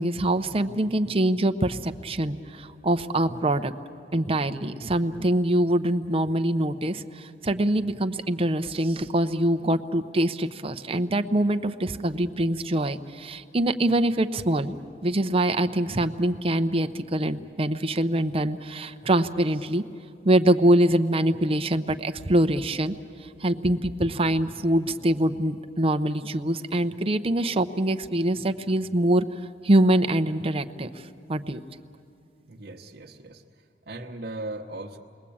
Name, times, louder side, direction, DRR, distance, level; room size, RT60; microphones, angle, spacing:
voice 1, 0.0-3.7 4.1-14.8 15.0-19.8 20.2-22.9 23.4-29.3 29.6-30.9 31.3-31.6, right 1 dB, 30° right, 9 dB, 0.7 m, -24 dB
voice 2, 32.4-33.4 33.8-35.0, right 2 dB, 60° right, -1 dB, 1.1 m, -38 dB
28.5 x 21.5 x 8.6 m, 2.5 s
head